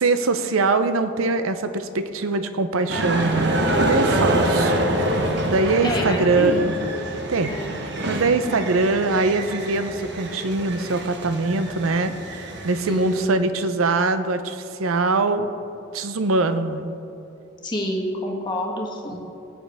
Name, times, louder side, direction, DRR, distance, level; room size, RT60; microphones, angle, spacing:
voice 1, 0.0-4.8 5.5-6.8 7.3-7.5 8.1-15.5 15.9-17.0 19.1-19.3, right 3 dB, 90° right, 10 dB, 0.7 m, -22 dB
sound 1, 2.9-13.2, right 1 dB, 55° right, 1.0 m, -26 dB
voice 2, 5.8-6.7 7.5-7.8 12.9-13.2 17.6-19.3, equal, 20° left, -1 dB, 1.4 m, -28 dB
18.0 x 8.8 x 3.5 m, 2.9 s
head